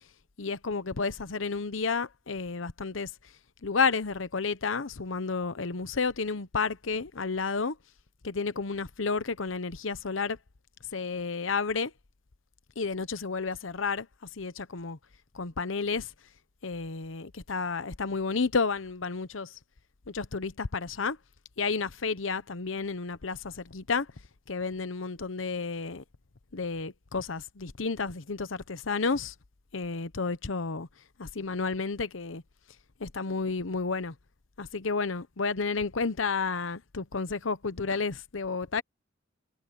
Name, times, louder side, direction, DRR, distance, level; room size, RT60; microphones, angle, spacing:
voice 1, 0.4-3.1 3.6-7.8 8.2-10.4 10.9-11.9 12.8-14.1 14.4-15.0 15.3-16.1 16.6-19.5 20.1-21.2 21.6-24.1 24.5-26.0 26.5-29.3 29.7-30.9 31.2-32.4 33.0-34.1 34.6-38.8, left 4 dB, 85° left, 1.0 m, -31 dB
head